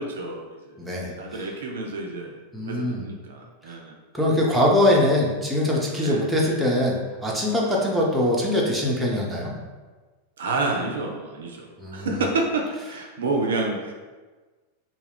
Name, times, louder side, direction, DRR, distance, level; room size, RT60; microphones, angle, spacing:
voice 1, 0.0-0.8 1.2-2.4 2.7-3.9 6.0-6.3 7.8-7.9 10.4-13.9, right 3 dB, 65° right, 1 dB, 0.3 m, -29 dB
voice 2, 0.8-1.4 2.5-3.0 4.1-9.6 11.8-12.1, left 1 dB, 5° right, -4 dB, 0.6 m, -22 dB
2.2 x 2.2 x 3.3 m, 1.3 s
figure-of-eight pair, 90°, 0 cm